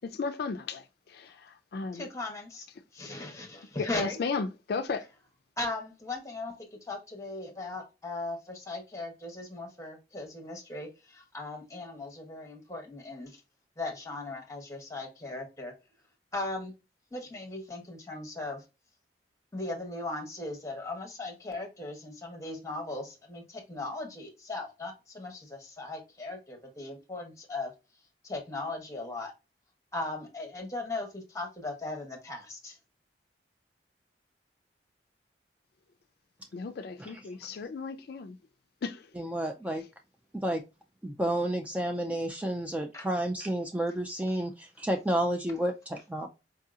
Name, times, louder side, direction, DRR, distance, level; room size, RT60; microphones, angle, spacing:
voice 1, 0.0-2.1 3.8-5.1 36.5-38.4 38.8-39.2 39.7-39.9, left 4 dB, 60° left, 0.4 m, -35 dB
voice 2, 1.9-2.7 2.9-4.2 5.6-13.4 13.8-15.7 16.3-16.7 17.1-18.6 19.5-27.7 28.2-29.3 29.9-32.8 42.9-43.1, left 2 dB, 20° left, 1.1 m, -38 dB
voice 3, 39.2-39.8 40.3-40.6 41.0-46.3, right 1 dB, 10° right, 0.3 m, -31 dB
4.6 x 2.8 x 2.4 m
head